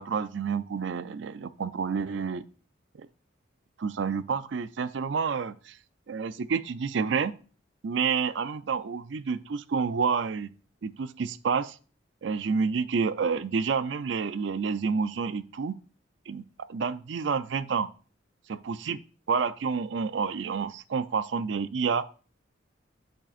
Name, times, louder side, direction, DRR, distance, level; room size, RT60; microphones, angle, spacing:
voice 1, 0.0-2.4 3.0-3.1 3.8-5.8 6.1-7.3 7.8-10.5 10.8-11.8 12.2-15.8 16.3-17.9 18.7-19.0 19.3-22.1, right 5 dB, 65° right, 14 dB, 0.4 m, -29 dB
8.4 x 6.4 x 2.5 m, 0.38 s
head